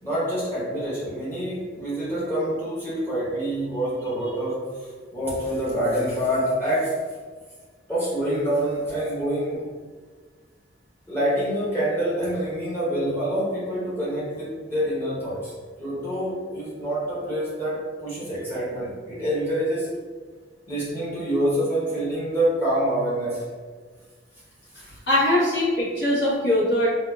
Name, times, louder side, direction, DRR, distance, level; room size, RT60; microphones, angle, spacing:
voice 1, 0.0-6.9 7.9-9.7 11.1-15.5 15.8-19.9 20.7-23.4 24.8-24.9, right 1 dB, 15° left, -10 dB, 0.9 m, -26 dB
voice 2, 25.1-26.9, left 1 dB, 60° left, -8 dB, 1.1 m, -21 dB
3.9 x 2.4 x 2.3 m, 1.5 s
head